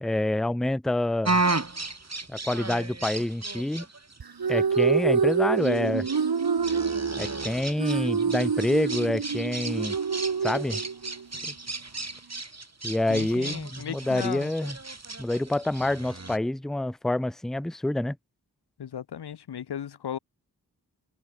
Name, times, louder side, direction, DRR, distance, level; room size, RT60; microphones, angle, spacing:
voice 1, 0.0-1.4 2.3-3.9 4.5-6.1 7.2-10.0 10.4-10.8 11.4-11.5 12.8-14.8 15.2-18.2, left 1 dB, ahead, 0.5 m, -27 dB
sound 1, 1.2-16.4, right 3 dB, 40° right, 5.9 m, -34 dB
sound 2, 4.2-11.2, right 6 dB, 70° right, 1.8 m, -26 dB
voice 2, 13.1-14.5 18.8-20.2, left 9 dB, 90° left, 0.8 m, -36 dB
open air
cardioid pair, 45°, 38 cm